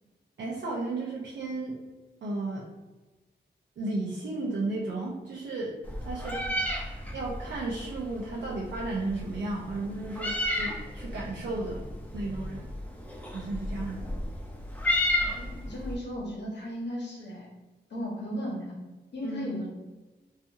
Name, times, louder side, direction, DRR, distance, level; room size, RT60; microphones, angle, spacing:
voice 1, 0.4-1.8 2.2-2.7 3.8-5.8 6.0-6.4 7.1-11.8 12.1-12.7 13.3-14.1 19.2-19.6, right 2 dB, 90° right, -4 dB, 0.5 m, -34 dB
Meow, 5.8-15.9, left 1 dB, 10° left, 0.4 m, -33 dB
voice 2, 15.2-17.5 17.9-18.7 19.1-19.7, equal, 85° left, -2 dB, 0.9 m, -36 dB
2.7 x 2.4 x 2.6 m, 1.2 s
wide cardioid pair, 135°, 18 cm